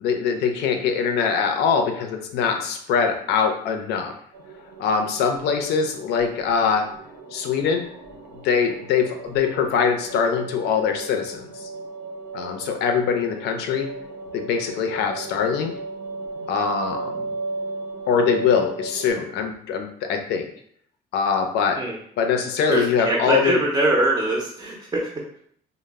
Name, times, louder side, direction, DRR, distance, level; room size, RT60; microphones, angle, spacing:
voice 1, 0.0-4.1 4.8-6.9 7.3-7.8 8.4-11.6 12.3-13.9 14.3-15.7 16.5-17.1 18.1-20.5 21.1-21.8 22.2-23.6, left 6 dB, 85° left, 5 dB, 0.5 m, -23 dB
sound 1, 4.3-19.1, right 3 dB, 90° right, 0.6 m, -36 dB
voice 2, 22.7-25.4, right 2 dB, 20° right, -3 dB, 0.5 m, -23 dB
2.0 x 2.0 x 3.3 m, 0.65 s
cardioid pair, 110°, 17 cm